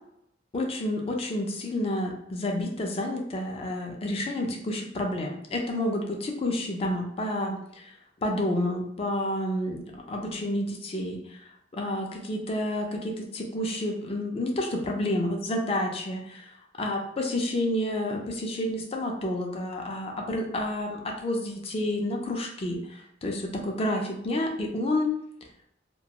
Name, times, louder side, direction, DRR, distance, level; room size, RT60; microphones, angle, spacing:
voice 1, 0.5-7.9 8.2-11.4 11.7-16.5 16.8-25.1, left 1 dB, 30° left, 2 dB, 0.4 m, -30 dB
2.3 x 2.2 x 2.8 m, 0.73 s
head